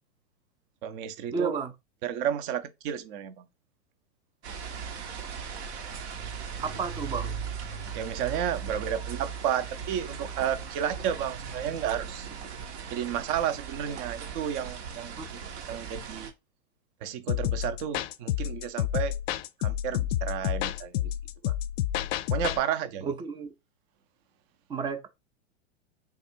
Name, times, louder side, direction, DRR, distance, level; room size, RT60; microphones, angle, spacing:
voice 1, 0.8-1.6 2.0-3.5 7.9-12.3 12.9-15.2 15.7-16.3 17.0-19.1 19.6-21.1 21.4-21.5 22.3-23.1, right 9 dB, 45° right, 0.7 m, -32 dB
voice 2, 1.3-1.7 6.6-7.3 15.2-15.3 23.0-23.5 24.7-25.1, right 5 dB, 15° right, 0.4 m, -32 dB
sound 1, 4.4-16.3, right 6 dB, 65° right, 1.0 m, -38 dB
sound 2, 17.3-22.6, left 12 dB, 60° left, 0.5 m, -29 dB
3.5 x 2.4 x 4.3 m
hypercardioid pair, 105°, 35 cm